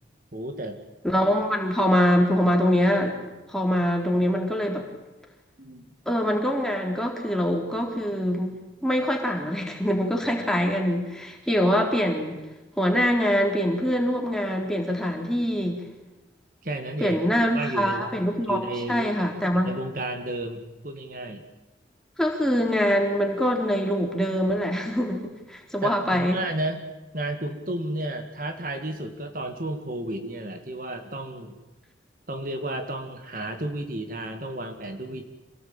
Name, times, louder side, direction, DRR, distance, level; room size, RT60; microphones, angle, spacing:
voice 1, 0.3-0.8 5.6-5.8 16.6-18.1 18.5-19.1 19.6-21.4 25.8-26.9 27.1-31.5 32.3-35.2, right 1 dB, 45° right, 6 dB, 2.3 m, -32 dB
voice 2, 1.0-3.2 3.5-4.9 6.1-8.6 8.8-12.4 12.8-15.8 17.0-19.8 22.2-26.4, equal, 5° left, 1 dB, 3.9 m, -24 dB
27.0 x 19.0 x 9.0 m, 1.1 s
head